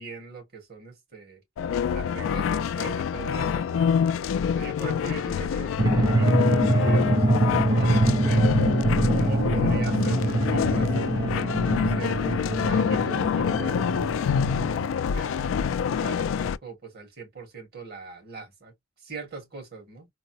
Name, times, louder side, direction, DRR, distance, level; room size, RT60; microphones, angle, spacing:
voice 1, 0.0-1.4 1.9-3.9 4.5-7.4 7.7-8.5 9.2-15.5 16.0-20.1, right 4 dB, 55° right, 1.9 m, -41 dB
sound 1, 1.6-16.6, left 7 dB, 85° left, 0.3 m, -26 dB
sound 2, 5.8-15.0, right 2 dB, 20° right, 0.5 m, -24 dB
4.0 x 2.1 x 2.7 m
head